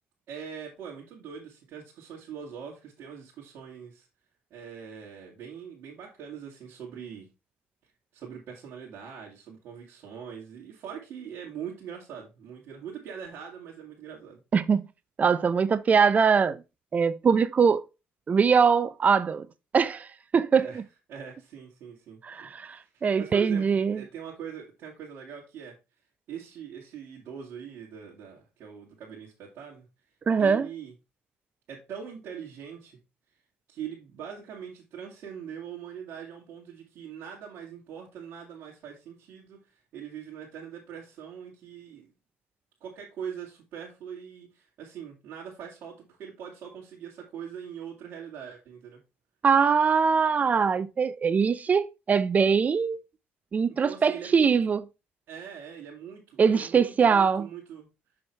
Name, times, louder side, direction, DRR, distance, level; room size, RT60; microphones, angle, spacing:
voice 1, 0.3-4.1 4.5-7.3 8.1-14.4 20.5-20.8 21.1-25.8 26.3-29.8 30.4-30.9 31.7-33.0 33.3-33.4 33.7-42.1 42.8-49.0 53.7-54.5 55.3-57.9, right 8 dB, 65° right, 2.4 m, -42 dB
voice 2, 14.5-14.9 15.2-16.6 16.9-17.9 18.3-19.5 19.7-20.1 20.3-20.8 22.2-24.0 30.3-30.7 49.4-53.0 53.5-54.8 56.4-57.5, right 6 dB, 35° right, 0.5 m, -22 dB
6.2 x 6.1 x 3.2 m
supercardioid pair, 80°, 4 cm